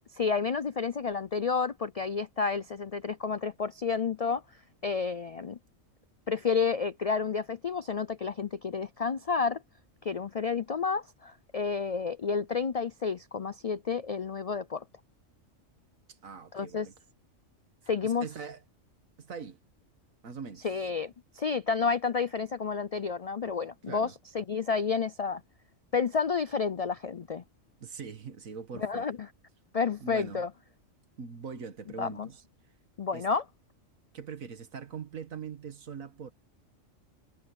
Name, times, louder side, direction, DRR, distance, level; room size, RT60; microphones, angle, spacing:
voice 1, 0.1-4.4 4.8-5.6 6.3-9.6 10.0-14.8 16.5-16.9 17.9-18.3 20.6-25.4 25.9-27.4 28.8-29.2 29.7-30.5 32.0-32.3 33.0-33.4, left 5 dB, 70° left, 0.3 m, -30 dB
voice 2, 16.1-16.9 18.0-18.6 19.2-19.6 20.2-20.7 23.9-24.1 27.8-29.1 30.0-30.4 31.2-32.4 33.1-33.2 34.1-36.3, right 6 dB, 85° right, 1.9 m, -42 dB
omnidirectional pair, 1.4 m